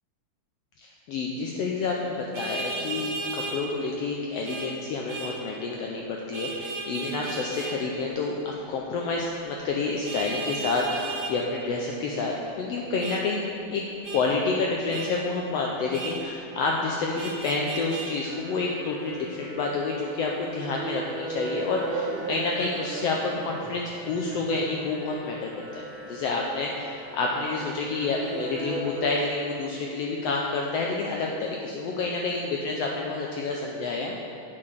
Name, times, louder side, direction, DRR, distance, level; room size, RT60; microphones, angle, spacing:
voice 1, 0.8-13.4 13.7-13.8 14.1-34.3, left 3 dB, 80° left, -1 dB, 1.4 m, -29 dB
Vehicle horn car horn honking, 2.3-3.6 4.4-4.7 5.1-5.3 6.3-7.7 10.0-11.3 13.0-13.2 14.0-14.2 14.9-15.1 15.9-16.2 17.2-18.1, right 3 dB, 55° right, 2.6 m, -34 dB
sound 1, 18.3-29.1, right 3 dB, 90° right, 2.5 m, -37 dB
7.8 x 5.8 x 6.5 m, 2.9 s
omnidirectional pair, 3.5 m